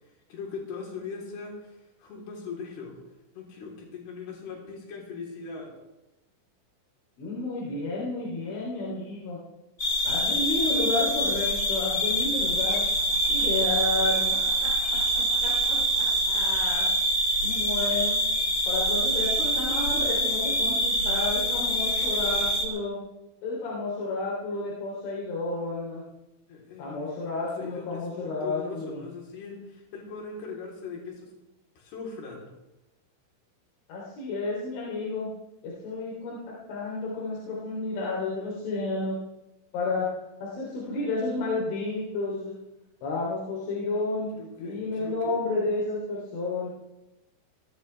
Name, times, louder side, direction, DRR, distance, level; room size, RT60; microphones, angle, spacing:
voice 1, 0.3-3.0 3.3-5.7 26.5-27.1 27.4-31.3 31.8-32.5 44.4-45.4, left 5 dB, 55° left, -1 dB, 5.3 m, -40 dB
voice 2, 7.2-9.4 10.1-12.8 13.3-16.9 17.4-18.2 18.7-23.0 23.4-26.0 26.8-29.0 33.9-35.3 35.6-39.2 39.7-40.1 40.4-42.6 43.0-44.3 44.6-46.7, left 3 dB, 80° left, -5 dB, 5.6 m, -31 dB
sound 1, 9.8-22.7, right 1 dB, 30° left, 1.8 m, -25 dB
21.0 x 17.5 x 3.4 m, 0.95 s
omnidirectional pair, 5.5 m